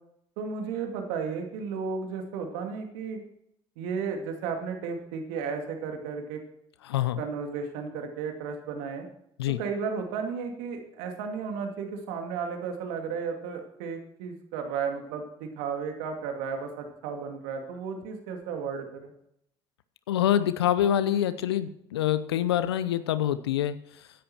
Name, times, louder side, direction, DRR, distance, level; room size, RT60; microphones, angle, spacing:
voice 1, 0.4-3.2 3.8-6.4 7.2-9.1 9.6-19.1, right 5 dB, 80° right, 4 dB, 2.4 m, -34 dB
voice 2, 6.8-7.2 9.4-9.6 20.1-23.8, left 11 dB, 90° left, 14 dB, 0.7 m, -25 dB
16.0 x 10.5 x 4.5 m, 0.76 s
hypercardioid pair, 55°, 13 cm